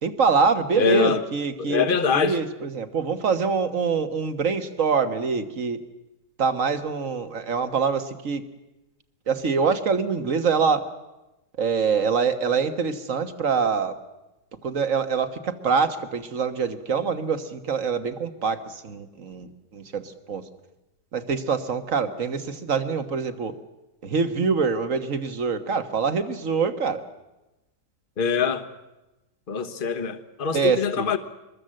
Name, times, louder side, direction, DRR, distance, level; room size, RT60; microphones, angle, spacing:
voice 1, 0.0-1.9 2.1-5.8 6.4-8.4 9.3-10.9 11.6-14.0 14.6-20.4 21.1-23.6 24.0-27.0 30.5-31.1, right 5 dB, 50° right, 9 dB, 1.8 m, -25 dB
voice 2, 0.7-1.2 1.6-2.4 28.2-28.7 29.5-31.2, left 6 dB, 35° left, 8 dB, 1.3 m, -24 dB
24.5 x 21.0 x 7.8 m, 1.0 s
omnidirectional pair, 1.8 m